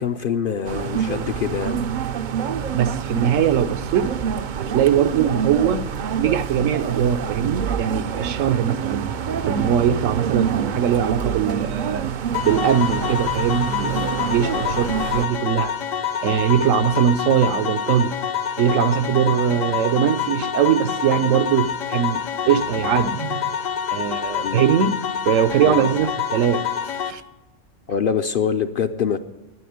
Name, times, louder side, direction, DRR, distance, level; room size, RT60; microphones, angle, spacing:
voice 1, 0.0-1.8 24.4-24.7 25.6-25.9 27.9-29.2, left 7 dB, 60° left, 0.6 m, -24 dB
sound 1, 0.6-15.3, right 7 dB, 60° right, 0.5 m, -26 dB
voice 2, 2.7-4.1 4.5-5.9 6.2-9.1 9.4-12.1 12.4-15.7 16.2-18.1 18.6-23.5 23.9-24.9 25.3-26.7 27.1-27.2, right 9 dB, 80° right, 1.1 m, -21 dB
sound 2, 12.3-27.1, left 8 dB, 80° left, 1.1 m, -27 dB
11.0 x 10.0 x 9.3 m
omnidirectional pair, 1.3 m